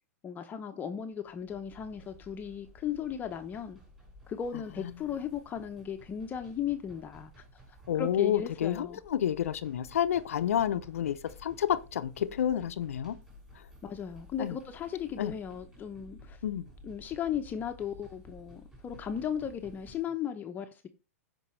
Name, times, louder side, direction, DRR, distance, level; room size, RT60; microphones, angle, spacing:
voice 1, 0.2-3.8 4.3-7.6 8.0-9.0 13.8-16.4 16.8-20.9, left 8 dB, 25° left, 0.8 m, -36 dB
sound 1, 1.2-20.0, left 1 dB, 10° right, 5.6 m, -54 dB
voice 2, 7.9-13.2 13.5-13.6 14.4-14.6 15.2-15.3 16.4-16.7, left 10 dB, 75° left, 0.6 m, -30 dB
14.5 x 5.2 x 3.2 m
hypercardioid pair, 120°, 8 cm